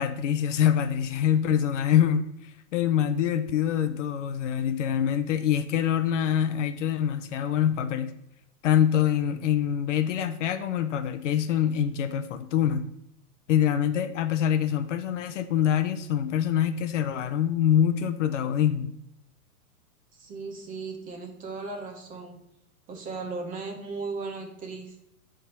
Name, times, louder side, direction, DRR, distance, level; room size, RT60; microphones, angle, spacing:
voice 1, 0.0-8.1 8.6-12.9 13.5-18.9, left 9 dB, 55° left, 11 dB, 0.7 m, -25 dB
voice 2, 20.1-22.4 22.9-25.0, right 4 dB, 20° right, 3 dB, 1.1 m, -36 dB
9.8 x 3.7 x 5.9 m, 0.79 s
hypercardioid pair, 150°, 45 cm